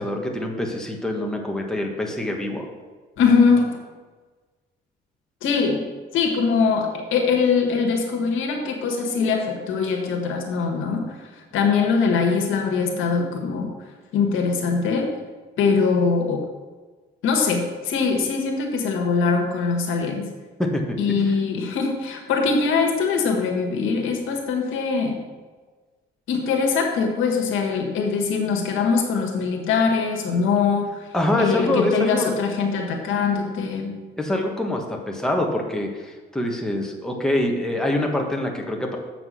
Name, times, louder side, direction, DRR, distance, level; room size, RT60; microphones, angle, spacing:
voice 1, 0.0-2.6 20.6-21.0 31.1-32.3 34.2-39.0, left 1 dB, 5° left, 0 dB, 1.5 m, -25 dB
voice 2, 3.2-3.8 5.4-5.9 6.1-13.7 14.1-15.1 15.6-16.4 17.2-20.3 21.0-25.2 26.3-31.1 31.4-33.9, left 5 dB, 85° left, 2 dB, 1.6 m, -22 dB
7.6 x 6.0 x 6.2 m, 1.4 s
cardioid pair, 90°, 20 cm